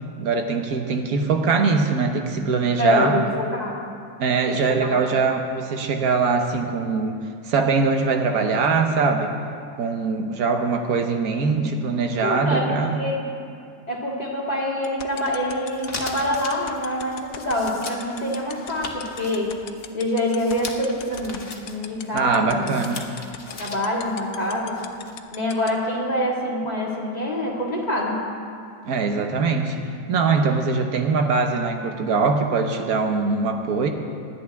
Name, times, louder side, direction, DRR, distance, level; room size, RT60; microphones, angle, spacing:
voice 1, 0.2-3.2 4.2-7.2 7.5-9.3 9.8-13.0 22.1-23.1 28.8-29.8 30.1-33.9, right 4 dB, 90° right, 5 dB, 1.5 m, -22 dB
voice 2, 2.8-3.8 4.8-5.0 11.3-11.7 12.2-13.2 13.9-19.5 19.9-22.8 23.6-24.8 25.3-28.2, left 1 dB, 30° left, -4 dB, 2.2 m, -26 dB
sound 1, 14.8-25.7, left 10 dB, 75° left, 1.1 m, -36 dB
sound 2, 15.1-25.2, left 3 dB, 45° left, 1.3 m, -40 dB
19.0 x 12.0 x 3.5 m, 2.4 s
omnidirectional pair, 1.5 m